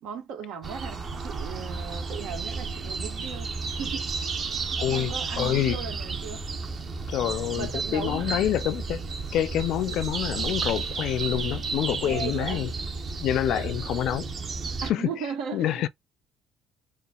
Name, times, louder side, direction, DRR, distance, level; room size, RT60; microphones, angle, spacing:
voice 1, 0.0-4.1 4.5-6.5 7.5-8.5 12.0-12.7 13.4-13.7 14.8-15.9, right 7 dB, 80° right, 1.3 m, -37 dB
sound 1, 0.6-14.9, right 4 dB, 35° right, 0.9 m, -32 dB
voice 2, 4.8-5.8 7.1-9.0 9.3-12.7 13.2-14.3 14.9-15.1 15.5-15.9, left 12 dB, 70° left, 0.4 m, -27 dB
6.8 x 2.4 x 2.3 m
cardioid pair, 115°, 0 cm